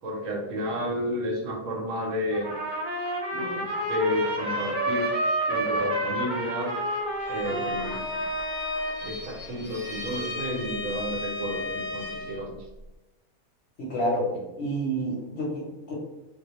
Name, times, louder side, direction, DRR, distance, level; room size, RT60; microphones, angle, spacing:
voice 1, 0.0-2.5 3.3-5.2 5.5-6.7 7.3-8.3 9.0-12.6, equal, 70° right, 0 dB, 0.9 m, -31 dB
Trumpet, 2.3-9.1, right 1 dB, 55° right, 0.5 m, -29 dB
Bowed string instrument, 7.2-12.5, left 2 dB, 85° left, 1.0 m, -34 dB
voice 2, 13.8-14.3 14.6-15.9, right 1 dB, 60° left, -5 dB, 0.8 m, -29 dB
2.3 x 2.1 x 2.9 m, 1.0 s
omnidirectional pair, 1.5 m